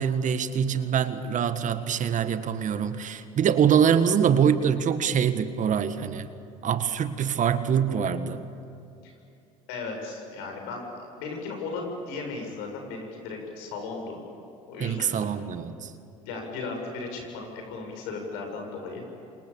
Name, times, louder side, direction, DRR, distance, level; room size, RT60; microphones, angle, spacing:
voice 1, 0.0-6.3 6.6-8.4 14.8-15.9, right 8 dB, 45° right, 10 dB, 1.8 m, -24 dB
voice 2, 9.7-14.2 14.7-15.3 16.2-19.0, left 3 dB, 70° left, 2 dB, 7.5 m, -36 dB
29.0 x 26.5 x 7.2 m, 2.6 s
hypercardioid pair, 70°, 18 cm